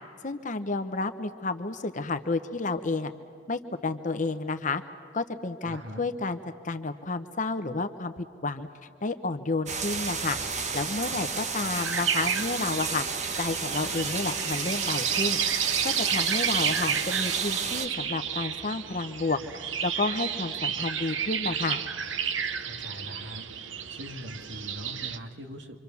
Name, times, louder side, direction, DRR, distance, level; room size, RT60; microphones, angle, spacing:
voice 1, 0.2-3.1 3.5-4.8 5.1-6.4 6.6-8.7 9.0-10.4 10.7-13.1 13.4-15.4 15.8-19.4 19.8-21.8, left 3 dB, 40° left, 9 dB, 0.9 m, -30 dB
voice 2, 5.6-6.1 22.6-25.8, equal, 65° right, 5 dB, 2.1 m, -42 dB
sound 1, 9.7-17.9, right 4 dB, 40° right, 1.5 m, -32 dB
sound 2, 11.7-25.2, right 8 dB, 80° right, 1.0 m, -31 dB
26.0 x 26.0 x 7.1 m, 2.4 s
head